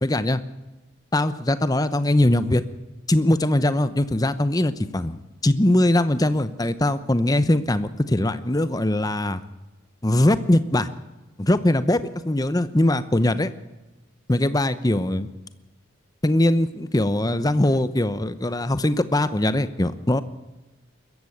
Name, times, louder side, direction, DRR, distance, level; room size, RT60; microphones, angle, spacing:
voice 1, 0.0-0.4 1.1-2.6 3.1-9.4 10.0-10.9 11.4-12.0 12.2-13.5 14.3-15.3 16.2-20.2, left 1 dB, 20° left, 13 dB, 0.8 m, -21 dB
21.0 x 14.5 x 8.5 m, 1.1 s
head